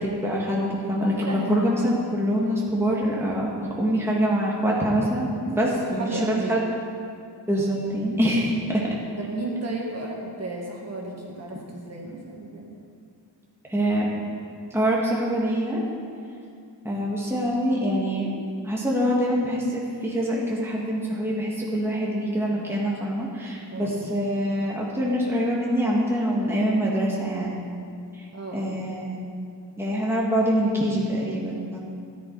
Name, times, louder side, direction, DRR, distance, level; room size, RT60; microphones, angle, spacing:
voice 1, 0.0-6.6 7.5-9.0 13.7-14.1 14.7-15.8 16.8-18.3 18.6-27.6 28.1-28.3 28.5-29.2 29.8-31.8, equal, 5° right, -5 dB, 2.0 m, -25 dB
voice 2, 1.2-1.5 5.9-6.7 9.2-12.7 23.7-24.0 28.3-28.7, right 2 dB, 35° right, -3 dB, 2.2 m, -33 dB
13.5 x 11.0 x 4.8 m, 2.3 s
wide cardioid pair, 95°, 44 cm